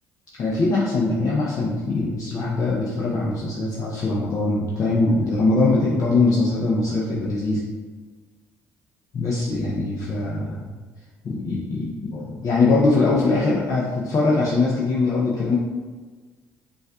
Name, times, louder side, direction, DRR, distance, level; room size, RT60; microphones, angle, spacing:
voice 1, 0.4-7.6 9.1-10.6 11.2-15.6, left 3 dB, 50° left, -5 dB, 0.6 m, -22 dB
5.1 x 2.4 x 2.4 m, 1.4 s
supercardioid pair, 65°, 7 cm